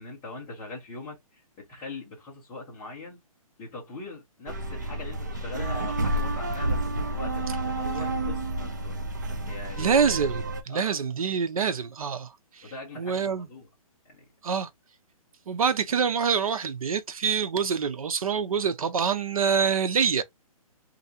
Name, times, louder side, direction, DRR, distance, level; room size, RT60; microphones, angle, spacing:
voice 1, 0.0-3.2 3.6-9.0 9.4-10.0 10.7-10.9 12.6-13.7 14.0-14.3, left 3 dB, 10° left, 0.8 m, -42 dB
sound 1, 4.5-10.6, right 1 dB, 30° right, 0.4 m, -30 dB
voice 2, 9.8-12.7 13.0-13.5 14.4-14.7 15.5-20.2, right 6 dB, 70° right, 0.6 m, -26 dB
3.2 x 2.5 x 2.7 m
hypercardioid pair, 175°, 19 cm